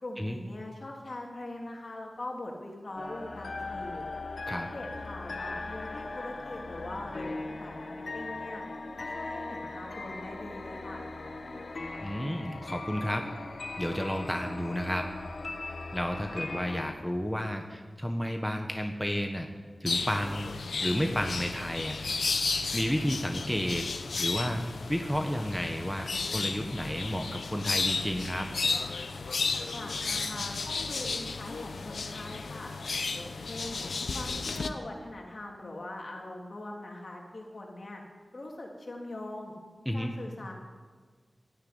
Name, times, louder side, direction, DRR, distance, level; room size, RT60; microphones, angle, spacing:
voice 1, 0.0-4.0 4.5-7.3 7.6-8.6 9.0-11.0 29.5-32.7 33.2-33.8 34.1-38.0 38.3-39.5 39.9-40.5, left 1 dB, 50° left, 0 dB, 3.3 m, -41 dB
sound 1, 3.0-16.9, left 3 dB, 65° left, 1.4 m, -39 dB
voice 2, 12.0-13.2 13.8-15.0 15.9-19.5 19.8-20.5 20.8-22.0 22.7-23.9 24.2-24.6 24.9-28.5 39.8-40.1, equal, ahead, 3 dB, 1.2 m, -31 dB
sound 2, 19.9-34.7, left 4 dB, 90° left, 0.9 m, -33 dB
14.0 x 10.0 x 9.5 m, 1.5 s
wide cardioid pair, 95°, 0 cm